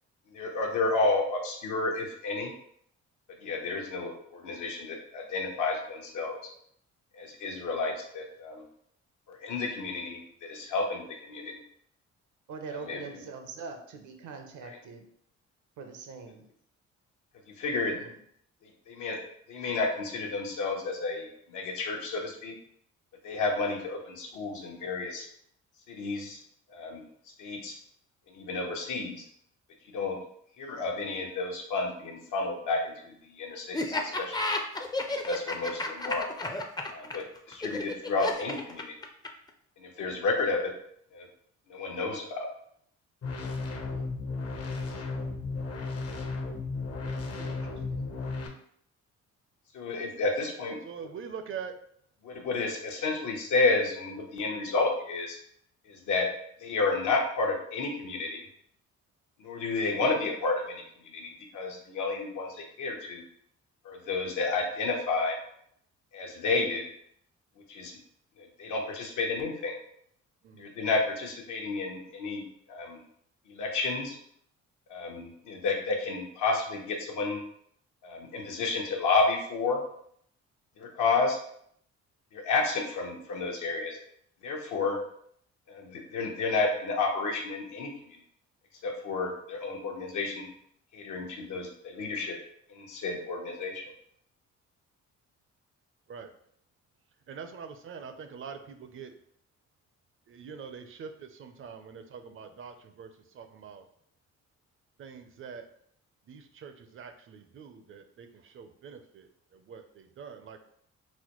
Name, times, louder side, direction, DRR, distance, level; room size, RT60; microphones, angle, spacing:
voice 1, 0.3-2.5 3.4-6.4 7.1-8.6 9.3-10.2 10.5-11.1 12.7-13.2 14.6-14.8 17.6-17.9 18.9-19.2 19.5-22.5 23.2-25.3 25.9-26.4 26.7-27.0 27.4-27.8 28.3-29.2 29.9-30.2 30.6-34.4 35.0-36.3 36.9-38.9 39.8-40.7 41.1-41.3 41.7-42.5 49.7-50.8 52.2-55.4 55.9-56.3 56.6-58.4 59.4-60.8 61.1-63.2 63.8-65.4 66.1-66.9 67.7-68.0 68.4-69.7 70.6-72.4 72.7-73.0 73.5-74.2 74.9-77.4 78.0-79.8 80.8-81.4 82.3-84.0 84.4-85.0 85.7-88.2 88.8-90.5 90.9-92.3 92.7-93.8, left 3 dB, 80° left, 1 dB, 0.9 m, -31 dB
voice 2, 12.5-15.1 15.8-16.4 17.9-18.2 43.8-44.1 44.7-45.3 47.3-48.1, right 4 dB, 75° right, 5 dB, 0.7 m, -44 dB
Laughter, 33.7-39.5, left 2 dB, 15° left, 0.4 m, -32 dB
sound 1, 43.2-48.5, left 3 dB, 50° left, 0.7 m, -34 dB
voice 3, 50.8-51.7 70.4-70.8 96.1-96.3 97.3-99.1 100.3-103.1 103.3-103.9 105.0-105.7 106.3-110.6, right 6 dB, 45° right, 7 dB, 0.5 m, -44 dB
4.1 x 2.1 x 3.0 m, 0.67 s
cardioid pair, 90°, 30 cm